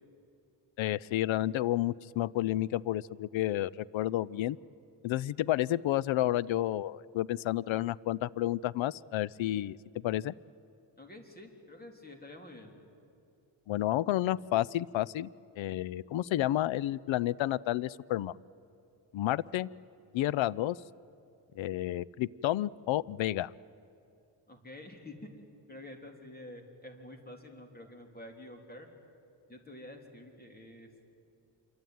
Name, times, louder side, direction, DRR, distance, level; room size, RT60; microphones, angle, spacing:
voice 1, 0.8-4.6 5.0-9.8 10.0-10.3 13.7-15.3 15.6-18.3 19.1-19.7 20.1-20.8 21.6-23.5, left 14 dB, 85° left, 22 dB, 0.7 m, -30 dB
voice 2, 11.0-12.7 24.5-25.2 25.7-28.9 29.5-30.9, left 1 dB, 20° left, 3 dB, 3.5 m, -48 dB
27.0 x 23.5 x 9.4 m, 2.6 s
cardioid pair, 120°, 45 cm